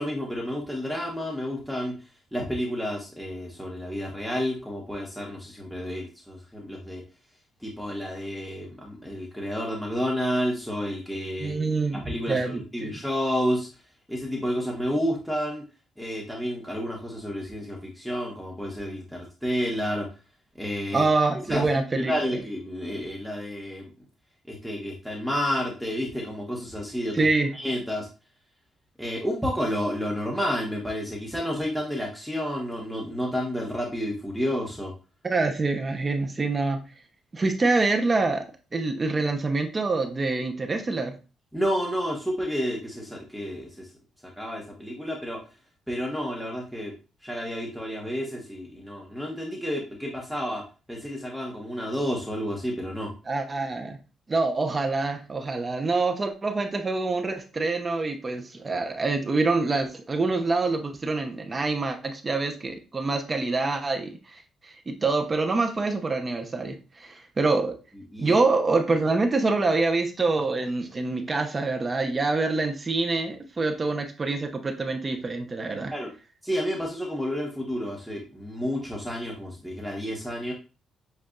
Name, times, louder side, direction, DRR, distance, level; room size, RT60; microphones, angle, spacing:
voice 1, 0.0-7.0 7.6-13.7 14.1-15.6 16.0-20.1 20.6-21.0 21.5-23.9 24.5-27.3 27.5-28.1 29.0-34.9 36.4-36.5 41.5-43.9 44.2-45.4 45.9-46.9 47.2-53.1 68.1-68.4 75.9-76.1 76.4-80.5, equal, ahead, -1 dB, 1.1 m, -30 dB
voice 2, 11.4-12.9 20.9-22.1 27.1-27.5 35.2-36.8 37.3-38.4 38.7-41.1 53.3-54.0 54.3-67.7 68.2-75.9, right 3 dB, 30° right, 5 dB, 0.8 m, -26 dB
7.5 x 2.6 x 2.4 m, 0.32 s
cardioid pair, 90°, 0 cm